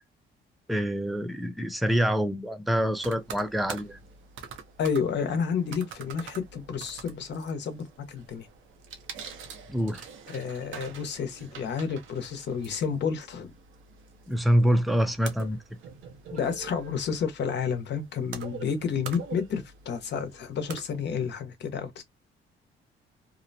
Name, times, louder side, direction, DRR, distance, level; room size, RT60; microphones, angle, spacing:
voice 1, 0.7-4.0 9.7-10.0 14.3-15.6, equal, ahead, 0.5 m, -26 dB
sound 1, 3.0-21.3, right 6 dB, 75° right, 0.6 m, -45 dB
voice 2, 4.8-8.5 10.3-13.5 16.3-22.0, left 6 dB, 60° left, 0.9 m, -30 dB
2.7 x 2.1 x 2.7 m
cardioid pair, 90°, 20 cm